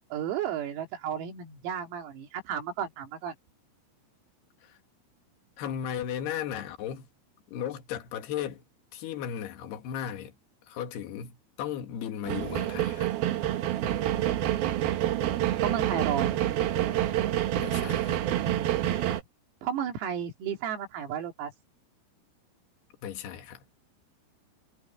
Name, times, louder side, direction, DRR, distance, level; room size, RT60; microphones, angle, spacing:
voice 1, 0.1-3.3 15.6-16.4 18.8-18.9 19.6-21.5, right 8 dB, 85° right, 5.7 m, -33 dB
voice 2, 5.6-7.1 7.5-8.6 8.9-10.3 10.7-13.1 17.5-18.2 23.0-23.6, left 9 dB, 60° left, 3.6 m, -36 dB
sound 1, 12.3-19.2, right 12 dB, 70° right, 2.4 m, -27 dB
omnidirectional pair, 6.0 m